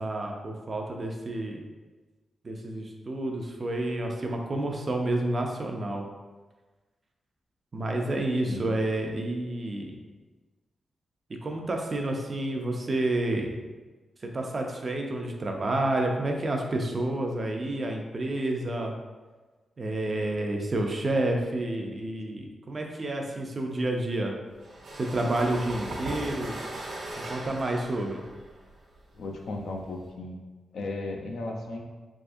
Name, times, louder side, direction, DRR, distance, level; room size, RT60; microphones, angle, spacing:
voice 1, 0.0-1.6 2.4-6.1 7.7-10.0 11.3-13.5 14.2-18.9 19.8-24.3 24.9-26.6 27.2-28.2, right 1 dB, 30° right, 2 dB, 0.4 m, -29 dB
sound 1, 24.6-30.1, right 1 dB, 60° right, 0.7 m, -38 dB
voice 2, 29.1-30.4 30.7-31.8, left 2 dB, 80° left, 1 dB, 0.5 m, -35 dB
3.5 x 3.3 x 2.5 m, 1.3 s
wide cardioid pair, 175°, 0 cm